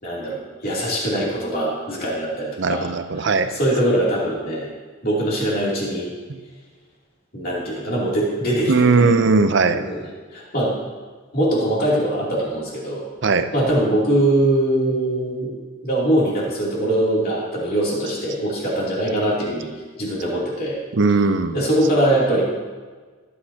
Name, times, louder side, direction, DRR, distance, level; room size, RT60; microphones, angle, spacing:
voice 1, 0.0-2.9 3.2-4.7 5.0-6.1 7.3-9.1 9.7-10.0 10.3-10.7 11.3-13.0 13.5-15.5 15.8-19.7 20.0-20.8 21.5-22.4, right 1 dB, 45° left, -5 dB, 3.0 m, -22 dB
voice 2, 2.6-3.5 6.3-6.4 8.7-9.9 13.2-13.5 20.9-21.6, right 4 dB, 60° right, 10 dB, 0.6 m, -18 dB
16.0 x 8.5 x 2.9 m, 1.4 s
head